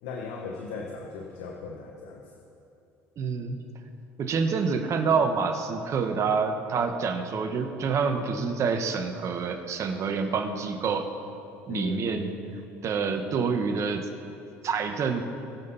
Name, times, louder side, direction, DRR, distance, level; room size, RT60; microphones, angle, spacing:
voice 1, 0.0-2.2 11.7-12.3, left 4 dB, 80° left, 1 dB, 1.2 m, -37 dB
voice 2, 3.2-3.6 4.2-11.1 11.7-12.3 12.8-14.1 14.6-15.2, right 5 dB, 45° right, 6 dB, 1.5 m, -27 dB
22.0 x 7.6 x 4.3 m, 2.8 s
supercardioid pair, 85°, 7 cm